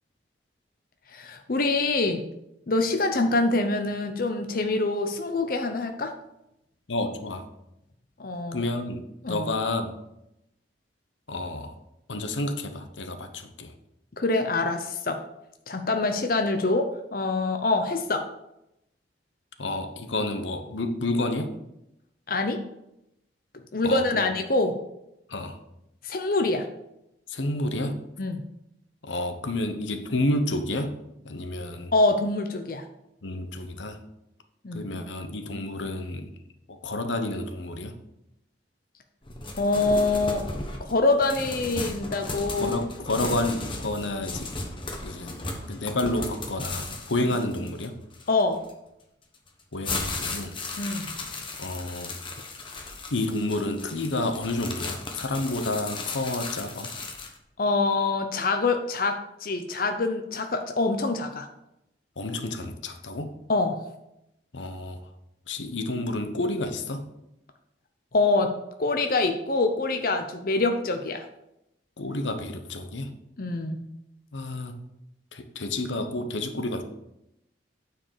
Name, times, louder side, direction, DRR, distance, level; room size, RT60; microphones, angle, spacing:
voice 1, 1.1-2.3 2.7-6.1 8.2-8.6 9.2-9.5 14.2-15.2 15.7-18.3 22.3-22.6 23.7-24.8 26.0-26.7 28.2-28.4 31.9-32.8 34.6-34.9 39.6-40.4 40.8-42.8 48.3-48.6 50.8-51.1 57.6-61.5 63.5-63.8 68.1-68.5 68.8-71.3 73.4-73.9, left 3 dB, 50° left, 6 dB, 0.7 m, -25 dB
voice 2, 6.9-7.5 8.5-9.0 9.3-9.9 11.3-11.8 12.1-13.7 19.6-21.5 23.8-24.3 25.3-25.6 27.3-28.0 29.0-30.9 31.2-31.9 33.2-34.0 34.7-36.4 36.7-38.0 42.6-44.5 45.0-48.0 49.7-50.6 51.6-52.2 53.1-56.9 62.2-63.3 64.5-65.1 65.5-67.1 72.0-73.1 74.3-74.8 75.3-76.8, left 2 dB, 90° left, 8 dB, 1.0 m, -30 dB
sound 1, 39.2-48.7 49.3-57.4, left 3 dB, 25° left, 1.1 m, -36 dB
9.0 x 4.9 x 6.6 m, 0.86 s
head